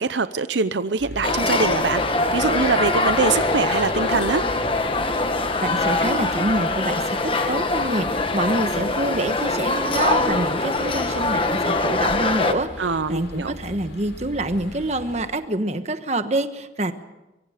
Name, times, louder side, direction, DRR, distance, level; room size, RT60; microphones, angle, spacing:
voice 1, 0.0-4.4 12.8-13.5, right 4 dB, 80° right, 12 dB, 0.7 m, -23 dB
sound 1, 1.0-15.3, left 1 dB, 80° left, 4.6 m, -40 dB
sound 2, 1.2-12.5, left 2 dB, 30° left, 1.3 m, -23 dB
voice 2, 5.6-12.8 13.1-16.9, right 1 dB, 40° right, 9 dB, 1.2 m, -26 dB
24.0 x 23.0 x 5.0 m, 1.0 s
head